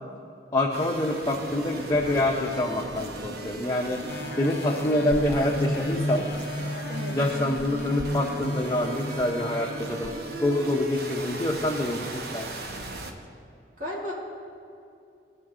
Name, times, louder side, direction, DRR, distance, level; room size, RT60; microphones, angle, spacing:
voice 1, 0.5-4.0 4.4-6.2 7.1-10.1 10.4-12.5, left 1 dB, 20° left, -2 dB, 0.6 m, -26 dB
sound 1, 0.7-13.1, right 2 dB, 60° right, 0.8 m, -37 dB
sound 2, 4.1-11.3 11.8-11.9, left 1 dB, 60° left, 0.6 m, -34 dB
voice 2, 6.9-7.2 13.8-14.1, left 1 dB, 45° right, -5 dB, 2.3 m, -34 dB
16.5 x 5.6 x 3.7 m, 2.6 s
head